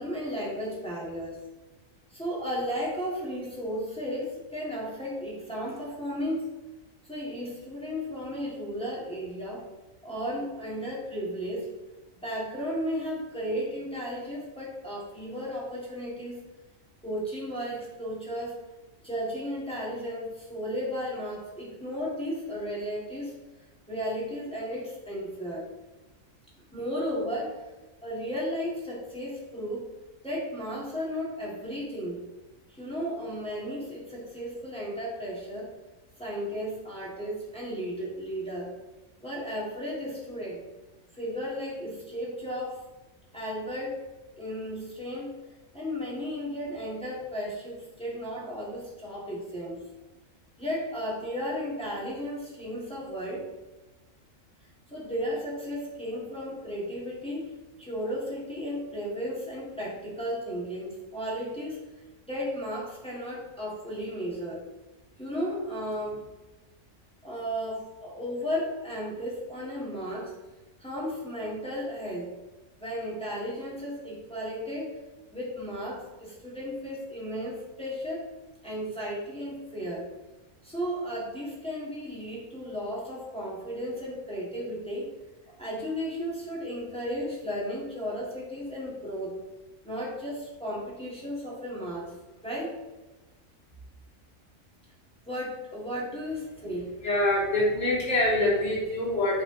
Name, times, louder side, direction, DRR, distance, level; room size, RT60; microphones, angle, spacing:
voice 1, 0.0-1.4 2.1-6.5 7.0-9.7 10.0-11.7 12.1-16.4 17.0-18.6 19.0-23.3 23.9-25.7 26.7-27.6 28.0-29.8 30.2-32.2 32.7-35.7 36.2-38.7 39.2-40.6 41.1-42.8 43.3-44.0 44.4-45.4 45.7-49.8 50.6-53.5 54.9-61.8 62.3-64.6 65.2-66.3 67.2-70.3 70.8-72.3 72.8-75.0 75.3-78.3 78.6-80.0 80.6-85.1 85.5-89.3 89.8-92.1 92.4-92.7 95.3-96.9, equal, 5° left, -6 dB, 2.0 m, -34 dB
voice 2, 97.0-99.4, left 1 dB, 60° left, -6 dB, 2.8 m, -25 dB
8.2 x 4.2 x 3.9 m, 1.1 s
omnidirectional pair, 1.4 m